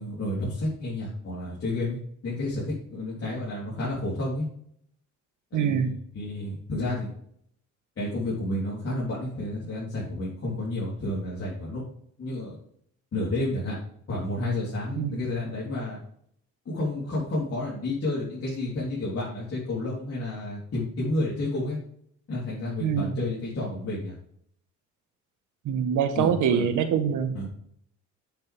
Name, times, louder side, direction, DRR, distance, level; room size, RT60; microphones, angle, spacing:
voice 1, 0.0-4.5 5.5-7.1 8.0-11.8 12.2-12.6 13.1-13.8 14.1-16.0 16.7-21.8 22.3-24.1 26.2-26.6 27.3-27.5, left 1 dB, 50° left, -7 dB, 3.7 m, -31 dB
voice 2, 5.5-5.9 15.0-15.2 22.8-23.1 25.6-27.3, right 7 dB, 80° right, 8 dB, 1.3 m, -24 dB
7.6 x 7.6 x 3.5 m, 0.67 s
cardioid pair, 90°, 30 cm